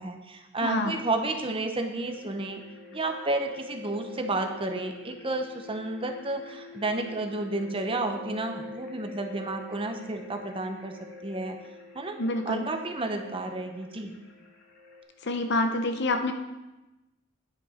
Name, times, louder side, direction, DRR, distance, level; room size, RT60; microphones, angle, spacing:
voice 1, 0.0-2.6 2.9-10.9 11.2-11.6 11.9-12.2 12.5-14.1, right 2 dB, 25° right, 5 dB, 0.8 m, -31 dB
voice 2, 0.6-0.9 12.2-12.6 15.2-16.3, left 2 dB, 55° left, 6 dB, 0.9 m, -27 dB
sound 1, 2.0-15.0, left 3 dB, 90° left, 2.4 m, -46 dB
9.8 x 7.1 x 5.0 m, 1.0 s
head